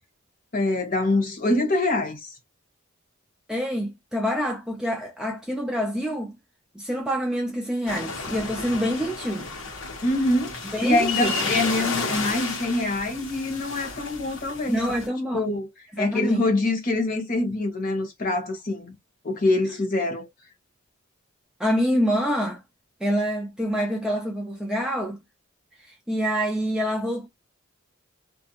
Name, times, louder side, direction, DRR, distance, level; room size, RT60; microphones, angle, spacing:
voice 1, 0.5-2.3 10.0-10.5 10.8-14.8 15.3-15.7 16.0-18.9 19.2-20.3, left 2 dB, 40° left, 1.0 m, -24 dB
voice 2, 3.5-6.3 6.7-9.5 10.7-11.5 11.8-11.9 14.7-15.5 16.0-16.5 21.6-22.6 23.0-25.2 25.9-27.3, equal, 5° right, 0.4 m, -26 dB
sound 1, 7.9-15.1, left 4 dB, 80° left, 1.1 m, -32 dB
2.4 x 2.2 x 2.8 m
head